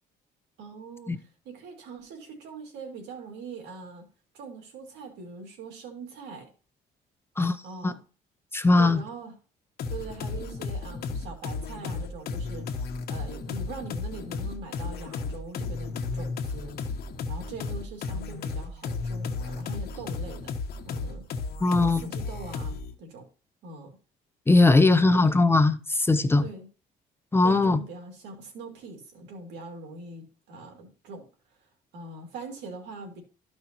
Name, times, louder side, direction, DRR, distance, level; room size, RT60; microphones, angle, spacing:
voice 1, 0.6-4.1 4.3-6.5 7.6-8.0 8.8-9.4 9.9-17.0 17.3-20.5 20.8-23.3 23.6-24.0 24.8-25.3 26.4-26.7 27.4-33.2, right 3 dB, 85° right, 2.6 m, -42 dB
voice 2, 8.5-9.0 21.6-22.0 24.5-26.5 27.3-27.8, left 2 dB, 15° left, 0.6 m, -20 dB
sound 1, 9.8-22.9, left 4 dB, 65° left, 1.2 m, -34 dB
13.0 x 5.4 x 3.0 m
cardioid pair, 110°, 17 cm